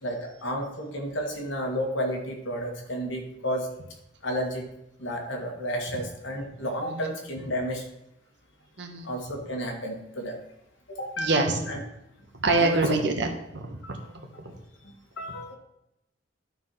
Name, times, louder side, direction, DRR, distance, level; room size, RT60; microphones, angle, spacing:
voice 1, 0.0-3.7 4.2-4.6 5.0-7.8 9.0-10.4 10.9-11.8 12.5-13.0 13.8-14.0 14.8-15.6, equal, 80° left, 1 dB, 2.1 m, -32 dB
voice 2, 8.8-9.1 11.2-11.6 12.4-14.0 14.4-14.5, right 3 dB, 65° right, 3 dB, 1.5 m, -25 dB
11.5 x 4.6 x 5.7 m, 0.86 s
head